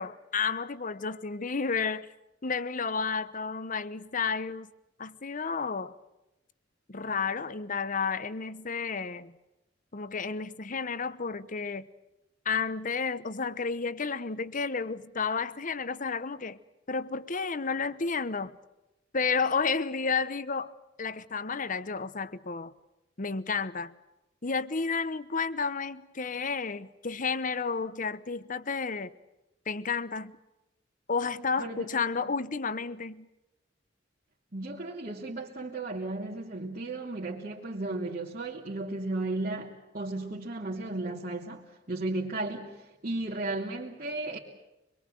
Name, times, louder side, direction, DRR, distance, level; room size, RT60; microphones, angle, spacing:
voice 1, 0.0-2.1 2.4-4.7 5.0-6.0 6.9-9.3 9.9-11.9 12.4-16.6 16.9-18.6 19.1-20.7 21.0-22.7 23.2-23.9 24.4-29.1 29.7-30.4 31.1-33.3, left 5 dB, 45° left, 1.0 m, -31 dB
voice 2, 34.5-44.4, right 2 dB, 45° right, 2.8 m, -35 dB
25.5 x 22.5 x 7.7 m
head